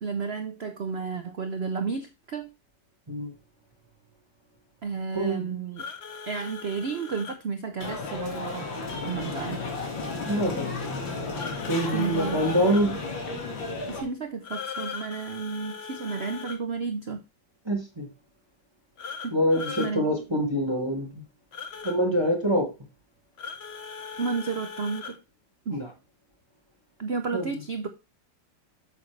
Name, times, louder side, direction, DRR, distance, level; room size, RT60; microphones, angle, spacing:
voice 1, 0.0-2.5 4.8-5.8 6.3-8.7 9.0-9.6 11.9-12.4 13.9-17.2 19.2-19.4 19.8-20.1 24.2-25.2 25.7-25.8 27.0-27.9, right 5 dB, 75° right, 0.5 m, -32 dB
voice 2, 5.1-5.6 10.3-10.8 11.7-13.0 17.7-18.1 19.3-21.2 21.8-22.7 25.7-25.9 27.3-27.5, equal, 15° right, 1.3 m, -25 dB
sound 1, 5.8-7.4 11.3-12.9 14.4-16.6 19.0-19.9 21.5-22.0 23.4-25.2, left 6 dB, 50° left, 0.8 m, -39 dB
sound 2, 7.8-14.0, left 3 dB, 75° left, 2.6 m, -33 dB
8.3 x 7.3 x 3.2 m
omnidirectional pair, 2.1 m